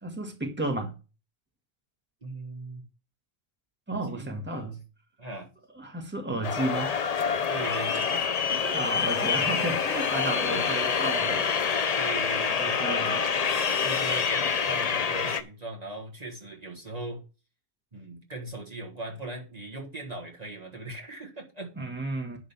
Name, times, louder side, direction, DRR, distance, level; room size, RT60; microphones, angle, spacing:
voice 1, 0.0-0.9 3.9-4.8 5.7-6.9 8.7-11.5 12.6-13.2 21.8-22.4, right 2 dB, 10° right, 1.7 m, -32 dB
voice 2, 2.2-2.8 4.0-4.6 5.2-5.5 7.5-8.8 10.3-10.9 11.9-17.2 17.9-21.7, right 2 dB, 35° right, 1.7 m, -39 dB
sound 1, 6.4-15.4, left 6 dB, 40° left, 0.7 m, -27 dB
11.0 x 3.9 x 7.1 m
omnidirectional pair, 1.1 m